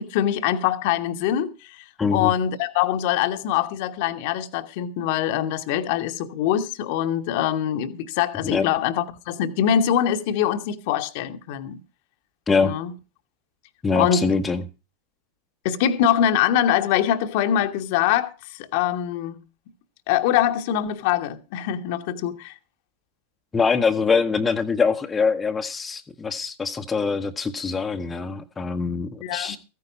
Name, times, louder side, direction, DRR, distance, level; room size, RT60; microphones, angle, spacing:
voice 1, 0.0-11.8 12.6-12.9 13.9-14.3 15.6-19.4 20.1-22.5 29.2-29.6, left 10 dB, 50° left, 1.1 m, -23 dB
voice 2, 2.0-2.3 8.4-8.7 12.5-12.7 13.8-14.6 23.5-29.6, left 5 dB, 15° left, 0.9 m, -23 dB
14.5 x 9.5 x 5.1 m
figure-of-eight pair, 90°, 0 cm